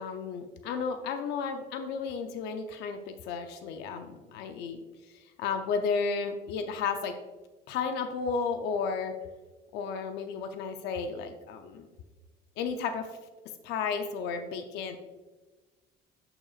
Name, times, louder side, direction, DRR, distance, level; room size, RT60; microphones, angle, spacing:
voice 1, 0.0-4.8 5.4-7.1 7.7-9.1 9.7-11.9 12.6-13.1 13.6-15.0, left 5 dB, 85° left, 7 dB, 0.6 m, -33 dB
10.5 x 5.9 x 2.4 m, 1.2 s
cardioid pair, 110°, 17 cm